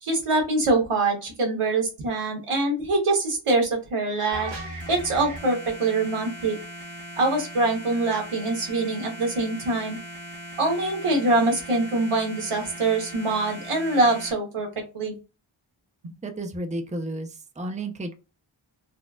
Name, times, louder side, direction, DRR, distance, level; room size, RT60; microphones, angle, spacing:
voice 1, 0.0-4.5 4.9-6.6 7.2-10.0 10.6-14.7 14.9-15.1, right 2 dB, 90° right, 1 dB, 1.2 m, -24 dB
sound 1, 4.3-14.3, right 1 dB, 60° right, 1.3 m, -39 dB
voice 2, 16.2-18.1, right 1 dB, 15° right, 6 dB, 0.5 m, -32 dB
4.1 x 2.3 x 2.3 m, 0.30 s
wide cardioid pair, 60°, 49 cm